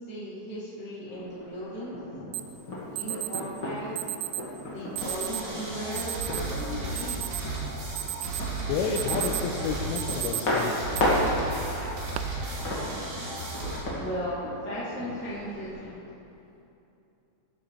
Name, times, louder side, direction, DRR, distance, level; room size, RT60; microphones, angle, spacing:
voice 1, 0.1-2.0 2.8-4.0 4.7-7.2 14.0-16.0, equal, 10° left, -8 dB, 0.6 m, -36 dB
sound 1, 1.1-16.0, left 1 dB, 40° left, 1.9 m, -34 dB
Alarm, 2.3-2.4 3.0-3.4 4.0-4.5 5.0-5.4 6.0-6.4 6.8-7.6 8.0-8.5 8.8-9.5 10.0-10.4 10.9-11.0 11.8-12.2, right 18 dB, 85° right, 2.8 m, -33 dB
sound 2, 5.0-13.8, right 2 dB, 65° right, 4.2 m, -35 dB
voice 2, 8.7-10.9, left 5 dB, 85° left, 1 dB, 2.8 m, -30 dB
14.5 x 12.5 x 3.3 m, 2.8 s
omnidirectional pair, 5.4 m